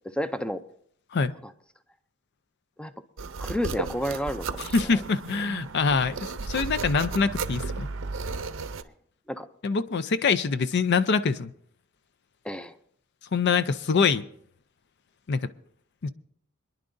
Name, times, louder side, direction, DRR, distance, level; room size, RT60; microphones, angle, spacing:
voice 1, 0.1-0.6 2.8-2.9 3.4-5.0 9.3-9.5 12.4-12.7, equal, 5° left, 11 dB, 0.4 m, -31 dB
sound 1, 3.2-8.8, right 4 dB, 75° right, 0.7 m, -34 dB
voice 2, 4.6-7.9 9.6-11.5 13.3-14.2 15.3-15.5 16.0-16.1, left 5 dB, 60° left, 13 dB, 0.5 m, -24 dB
26.0 x 10.5 x 2.6 m, 0.64 s
head